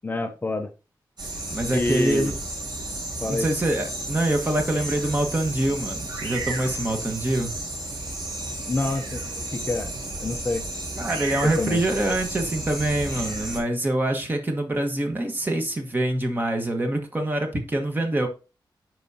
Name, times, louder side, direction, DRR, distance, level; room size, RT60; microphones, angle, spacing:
voice 1, 0.0-0.7 1.7-2.3 3.2-3.5 8.7-9.9 10.2-10.6 11.4-11.8, left 2 dB, 25° left, 0.6 m, -27 dB
sound 1, 1.2-13.6, right 2 dB, 60° right, 4.0 m, -33 dB
voice 2, 1.5-2.3 3.3-7.5 11.0-18.3, right 1 dB, 25° right, 1.3 m, -25 dB
10.5 x 4.7 x 2.8 m
wide cardioid pair, 170°, 8 cm